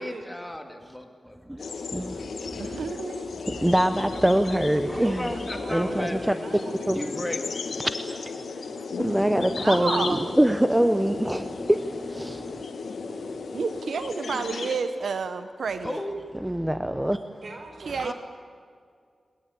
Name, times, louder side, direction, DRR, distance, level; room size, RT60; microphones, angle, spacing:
voice 1, 0.0-1.8 5.0-6.4 6.9-7.5 15.8-16.2 18.0-18.1, left 1 dB, 10° left, 2.7 m, -35 dB
sound 1, 1.6-14.8, left 4 dB, 80° left, 2.1 m, -35 dB
voice 2, 1.9-2.8 3.5-5.3 5.7-6.4 6.9-7.0 9.0-12.6 16.4-17.2, right 1 dB, 10° right, 0.9 m, -24 dB
voice 3, 2.6-3.3 9.6-10.3 13.5-16.0 17.9-18.1, right 5 dB, 85° right, 1.0 m, -30 dB
voice 4, 5.0-7.2 17.2-18.0, right 2 dB, 65° right, 5.1 m, -41 dB
21.5 x 21.5 x 8.6 m
wide cardioid pair, 90°, 0 cm